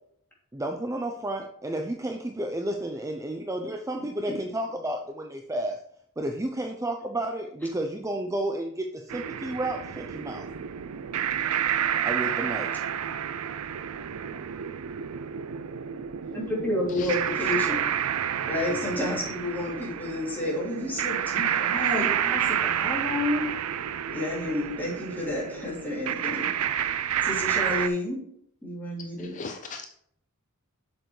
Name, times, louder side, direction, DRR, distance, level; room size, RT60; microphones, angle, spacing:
voice 1, 0.5-5.8 6.2-10.4 12.1-12.7, right 1 dB, 15° right, 3 dB, 0.5 m, -31 dB
voice 2, 4.0-4.4 16.3-17.9 18.5-23.4 24.1-26.5 27.2-28.2 28.6-29.3, left 1 dB, 10° left, -5 dB, 2.9 m, -30 dB
sound 1, 9.1-27.9, right 9 dB, 75° right, 0.5 m, -29 dB
voice 3, 29.2-29.9, left 4 dB, 35° left, 6 dB, 0.5 m, -38 dB
7.8 x 6.7 x 3.2 m, 0.68 s
head